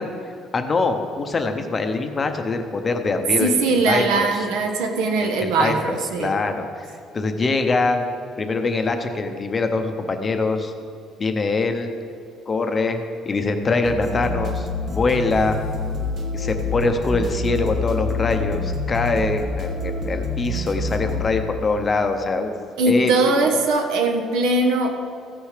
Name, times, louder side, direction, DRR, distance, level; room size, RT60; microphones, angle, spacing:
voice 1, 0.0-4.4 5.2-8.0 8.4-10.7 11.2-11.9 12.5-15.6 16.3-22.5 22.9-23.1 23.4-23.6, left 3 dB, 20° left, 6 dB, 0.6 m, -23 dB
voice 2, 3.4-6.4 22.8-24.9, right 3 dB, 80° right, 4 dB, 1.1 m, -20 dB
sound 1, 13.8-21.2, left 2 dB, 40° right, 1.4 m, -27 dB
15.0 x 6.5 x 4.9 m, 2.4 s
cardioid pair, 175°, 0 cm